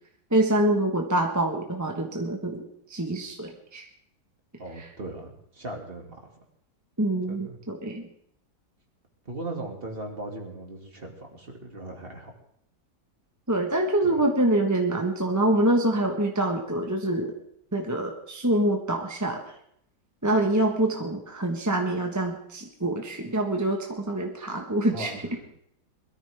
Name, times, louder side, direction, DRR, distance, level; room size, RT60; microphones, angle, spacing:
voice 1, 0.3-2.6 2.9-3.9 4.8-4.9 7.0-8.0 13.5-17.3 17.7-19.5 20.2-25.2, right 1 dB, 10° right, 2 dB, 1.1 m, -25 dB
voice 2, 4.6-6.3 7.3-7.6 9.3-12.3 14.0-14.2 24.9-25.5, right 2 dB, 35° right, 2 dB, 2.4 m, -38 dB
21.5 x 13.5 x 3.5 m, 0.72 s
omnidirectional pair, 1.8 m